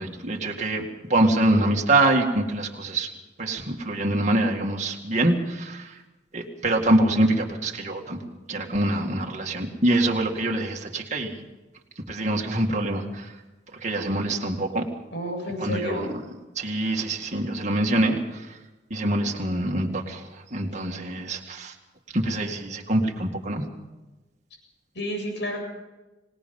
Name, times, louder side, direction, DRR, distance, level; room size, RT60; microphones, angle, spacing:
voice 1, 0.0-3.1 3.4-5.9 6.3-8.2 8.5-11.4 12.1-13.2 13.8-14.9 15.6-16.1 16.6-18.4 18.9-20.2 20.5-21.7 22.1-23.7, right 1 dB, 40° right, 1 dB, 2.1 m, -24 dB
voice 2, 15.1-16.1 24.9-25.6, equal, 70° left, 1 dB, 7.9 m, -30 dB
25.5 x 19.5 x 5.5 m, 1.1 s
head